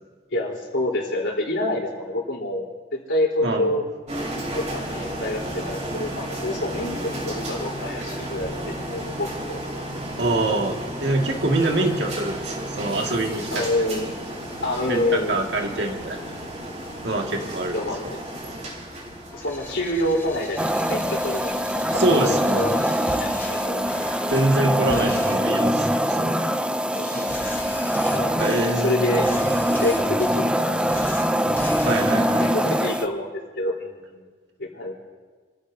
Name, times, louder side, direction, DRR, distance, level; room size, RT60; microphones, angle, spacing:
voice 1, 0.3-2.6 2.9-3.8 4.5-9.6 11.7-11.8 13.5-14.2 14.6-15.6 17.7-18.2 19.3-22.8 23.2-23.9 24.8-25.1 26.9-27.4 28.1-28.3 28.6-29.5 29.8-30.9 32.3-34.2 34.6-34.9, left 1 dB, 80° left, -2 dB, 4.0 m, -27 dB
voice 2, 3.4-3.8 10.2-13.6 14.9-16.2 17.0-17.7 21.9-22.6 24.3-26.5 27.0-27.3 28.4-29.1 31.8-32.5, right 2 dB, 65° right, 1 dB, 2.1 m, -25 dB
sound 1, 4.1-23.8, right 1 dB, 40° right, 3.4 m, -34 dB
sound 2, 19.3-24.6 24.9-25.3 25.8-26.1 26.9-28.6 29.0-30.3 30.8-31.2 31.5-32.0, left 1 dB, 15° left, 3.2 m, -38 dB
sound 3, 20.6-33.1, equal, 5° right, 0.5 m, -23 dB
29.5 x 15.0 x 2.8 m, 1.5 s
head